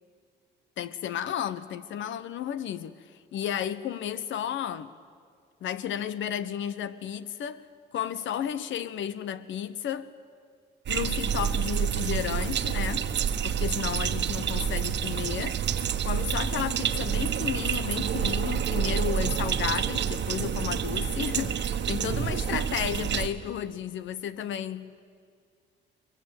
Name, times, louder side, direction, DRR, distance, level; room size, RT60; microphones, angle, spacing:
voice 1, 0.8-3.0 3.3-4.9 5.6-7.6 7.9-10.1 10.9-13.1 13.4-15.6 16.0-25.0, left 9 dB, 75° left, 1.0 m, -33 dB
sound 1, 10.9-23.3, right 8 dB, 65° right, 1.3 m, -28 dB
22.5 x 22.0 x 9.0 m
cardioid pair, 90°, 20 cm